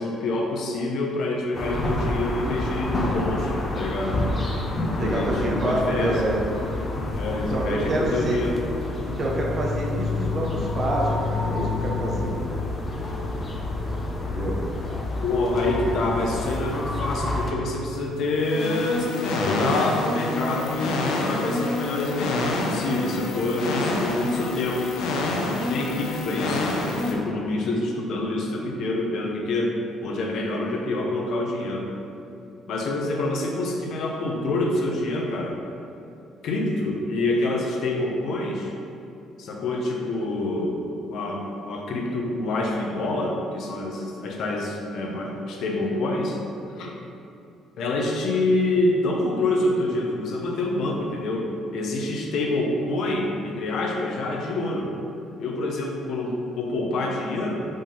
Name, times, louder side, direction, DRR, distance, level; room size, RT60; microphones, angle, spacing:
voice 1, 0.0-4.2 5.0-6.2 7.1-8.6 15.2-24.8 25.2-31.9 32.7-35.6 36.4-38.7 39.4-46.4 46.8-47.0 47.8-54.9 55.4-57.7, left 2 dB, 55° left, 0 dB, 0.8 m, -27 dB
sound 1, 1.5-17.5, left 2 dB, 25° left, 0.7 m, -28 dB
voice 2, 5.0-6.4 7.5-8.4 9.2-12.4 14.2-14.6, right 1 dB, 30° right, -3 dB, 1.0 m, -27 dB
sound 2, 18.2-27.1, left 2 dB, 85° left, 0.8 m, -27 dB
5.4 x 3.7 x 5.5 m, 2.7 s
cardioid pair, 160°, 0 cm